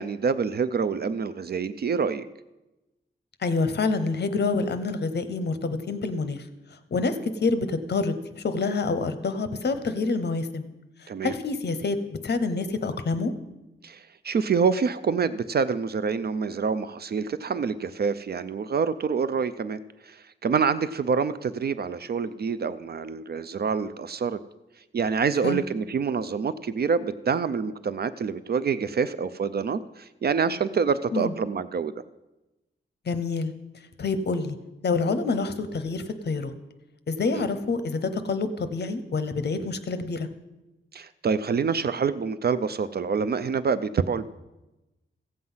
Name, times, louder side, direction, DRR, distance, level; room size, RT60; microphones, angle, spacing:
voice 1, 0.0-2.3 11.1-11.3 13.8-24.4 24.9-31.9 37.3-37.4 40.9-44.3, right 5 dB, 50° right, 14 dB, 0.4 m, -26 dB
voice 2, 3.4-6.5 6.9-10.7 11.0-13.3 25.4-25.7 31.1-31.3 33.1-33.5 34.0-34.6 34.8-36.5 37.1-40.3, left 3 dB, 55° left, 11 dB, 0.8 m, -27 dB
15.0 x 7.7 x 5.6 m, 1.0 s
wide cardioid pair, 165°, 20 cm